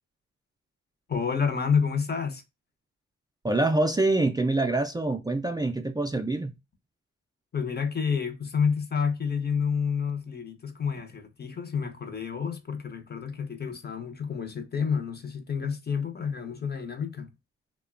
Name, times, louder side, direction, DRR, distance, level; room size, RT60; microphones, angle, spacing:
voice 1, 1.1-2.4 7.5-17.3, left 6 dB, 35° left, 0.7 m, -29 dB
voice 2, 3.4-6.5, right 2 dB, 15° right, 0.3 m, -25 dB
2.9 x 2.1 x 2.4 m
cardioid pair, 75°, 29 cm